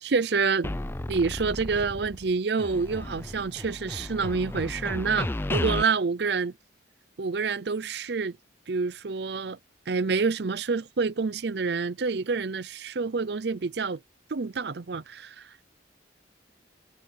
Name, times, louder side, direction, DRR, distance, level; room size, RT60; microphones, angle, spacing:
voice 1, 0.0-0.7 1.1-6.5 7.2-8.4 8.7-9.6 9.9-14.0 14.3-15.7, right 4 dB, 60° right, 0.5 m, -28 dB
sound 1, 0.6-2.3 2.6-5.8, left 1 dB, 10° left, 0.4 m, -33 dB
head